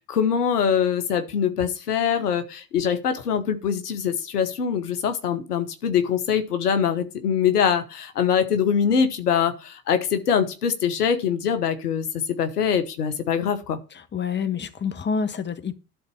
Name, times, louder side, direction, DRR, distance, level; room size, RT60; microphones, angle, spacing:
voice 1, 0.0-13.8, left 7 dB, 80° left, 1.1 m, -23 dB
voice 2, 13.9-15.8, left 6 dB, 25° left, 1.2 m, -27 dB
12.0 x 4.0 x 7.0 m
figure-of-eight pair, 60°, 46 cm